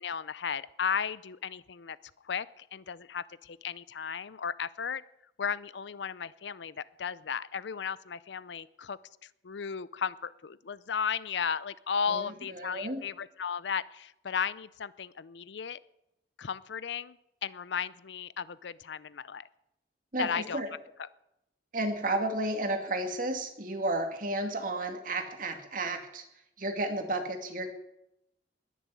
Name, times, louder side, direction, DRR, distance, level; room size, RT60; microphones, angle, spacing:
voice 1, 0.0-2.0 2.3-5.0 5.4-9.0 9.4-15.8 16.4-17.2 17.4-19.5 20.2-20.6 21.0-21.1, left 6 dB, 75° left, 18 dB, 0.5 m, -35 dB
voice 2, 12.1-13.0 20.1-20.7 21.7-26.2 26.6-27.7, right 2 dB, 45° right, 5 dB, 2.2 m, -32 dB
20.5 x 7.2 x 8.3 m, 0.84 s
head